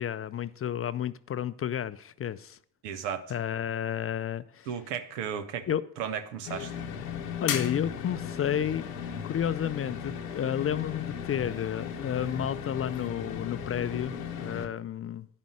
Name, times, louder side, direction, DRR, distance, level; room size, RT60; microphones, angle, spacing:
voice 1, 0.0-2.6 3.3-4.7 5.7-5.8 7.4-15.3, left 9 dB, 30° left, 0.4 m, -31 dB
voice 2, 2.8-3.3 4.7-5.7 6.0-6.7, right 8 dB, 85° right, 0.8 m, -34 dB
sound 1, 6.5-14.7, left 7 dB, 85° left, 0.9 m, -36 dB
10.0 x 5.2 x 6.3 m
hypercardioid pair, 45°, 46 cm